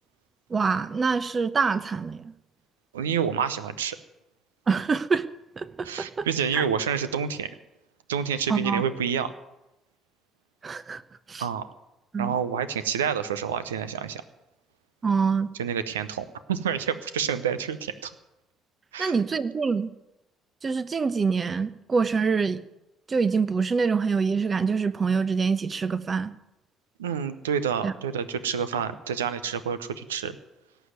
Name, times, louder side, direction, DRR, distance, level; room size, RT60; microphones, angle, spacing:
voice 1, 0.5-2.3 4.7-5.3 5.6-6.3 6.5-6.7 8.5-8.8 10.6-11.0 11.3-11.4 12.1-12.4 15.0-15.5 19.0-19.9 20.6-22.6 23.1-26.3 27.8-27.9, right 5 dB, 35° right, 14 dB, 0.9 m, -25 dB
voice 2, 2.9-4.0 5.8-7.5 8.1-9.3 11.4-11.6 12.2-14.2 15.6-18.1 18.9-19.2 27.0-30.4, right 7 dB, 80° right, 14 dB, 0.7 m, -28 dB
17.0 x 7.1 x 9.3 m, 0.93 s
figure-of-eight pair, 50°, 0 cm